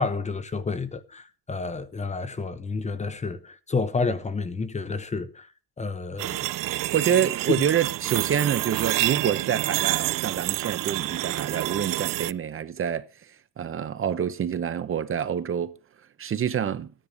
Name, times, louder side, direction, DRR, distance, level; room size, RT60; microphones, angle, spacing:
voice 1, 0.0-5.5 5.8-6.5, left 4 dB, 20° left, 0.9 m, -30 dB
sound 1, 6.2-12.3, right 16 dB, 65° right, 0.6 m, -28 dB
voice 2, 6.9-13.0 13.6-15.8 16.2-16.9, right 8 dB, 35° right, 0.9 m, -27 dB
15.0 x 10.0 x 5.3 m
cardioid pair, 175°, 35 cm